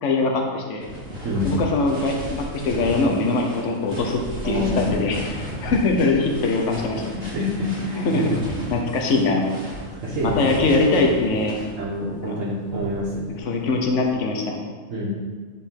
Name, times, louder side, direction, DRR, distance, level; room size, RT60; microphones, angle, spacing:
voice 1, 0.0-0.9 1.4-7.0 8.0-8.4 8.7-9.5 10.2-11.6 12.3-12.4 13.3-14.6, left 3 dB, 65° left, 1 dB, 1.2 m, -22 dB
sound 1, 0.8-12.1 12.6-14.1, equal, 50° right, 1.7 m, -34 dB
voice 2, 4.4-5.0 7.1-8.3 10.0-10.3 11.8-13.3 14.9-15.1, left 1 dB, 70° right, -6 dB, 1.6 m, -26 dB
9.9 x 4.6 x 3.8 m, 1.4 s
omnidirectional pair, 1.4 m